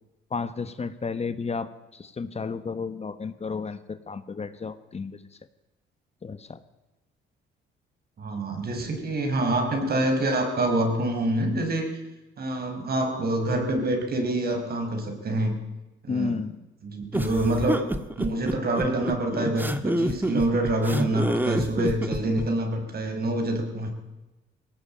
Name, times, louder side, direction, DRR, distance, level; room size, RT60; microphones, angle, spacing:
voice 1, 0.3-5.2 6.2-6.6 16.1-16.6, left 5 dB, 35° left, 12 dB, 1.2 m, -32 dB
voice 2, 8.2-11.9 12.4-15.5 16.0-16.4 16.8-17.9 18.2-23.9, right 1 dB, 50° right, 5 dB, 5.3 m, -26 dB
sound 1, 17.1-22.5, right 1 dB, 10° right, 1.5 m, -27 dB
19.5 x 17.0 x 8.9 m, 1.0 s
cardioid pair, 90°, 20 cm